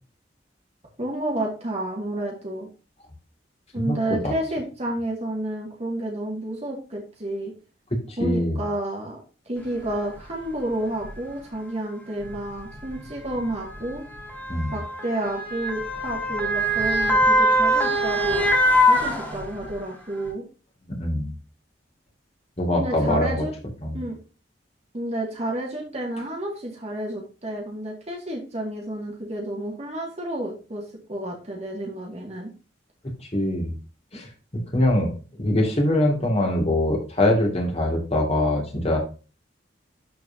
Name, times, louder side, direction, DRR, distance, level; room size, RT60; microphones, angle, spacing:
voice 1, 1.0-2.7 3.7-7.5 8.2-9.2 9.5-14.0 14.7-18.4 18.8-20.4 22.7-23.5 23.9-24.2 24.9-30.8 31.1-32.5, right 1 dB, 35° right, -1 dB, 2.2 m, -30 dB
voice 2, 8.1-8.6 14.5-14.8 20.9-21.3 22.6-23.4 23.8-24.0 33.3-33.7 34.1-34.3 34.5-35.1 35.4-39.0, left 1 dB, 35° left, 1 dB, 2.4 m, -23 dB
Motor vehicle (road) / Siren, 9.9-10.0 10.9-11.1 12.2-19.8 20.3-20.4, equal, 10° left, 2.5 m, -23 dB
12.5 x 4.6 x 2.8 m, 0.34 s
head